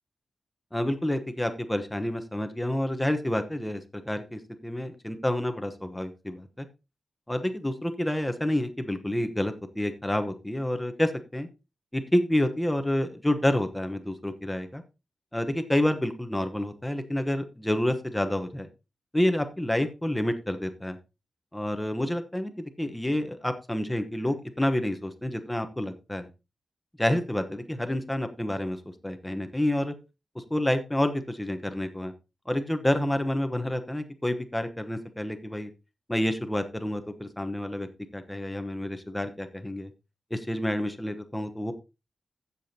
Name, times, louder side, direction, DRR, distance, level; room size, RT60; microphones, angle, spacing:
voice 1, 0.7-6.7 7.3-11.5 11.9-14.8 15.3-18.7 19.1-21.0 21.5-22.5 22.8-26.3 27.0-28.8 29.0-29.9 30.3-32.1 32.5-35.7 36.1-37.9 38.1-39.9 40.3-41.7, left 1 dB, 5° left, 7 dB, 1.0 m, -28 dB
15.5 x 7.0 x 2.8 m, 0.27 s
wide cardioid pair, 170°, 0 cm